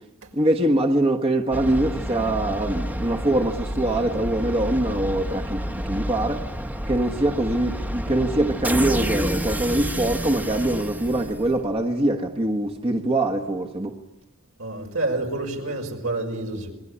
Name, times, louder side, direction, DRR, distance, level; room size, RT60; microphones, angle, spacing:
voice 1, 0.3-6.4 6.9-14.0, right 1 dB, 25° right, 1.4 m, -23 dB
sound 1, 1.5-11.8, equal, 10° right, 1.1 m, -29 dB
voice 2, 14.6-16.7, right 2 dB, 75° right, 5.6 m, -28 dB
27.5 x 22.0 x 9.9 m
head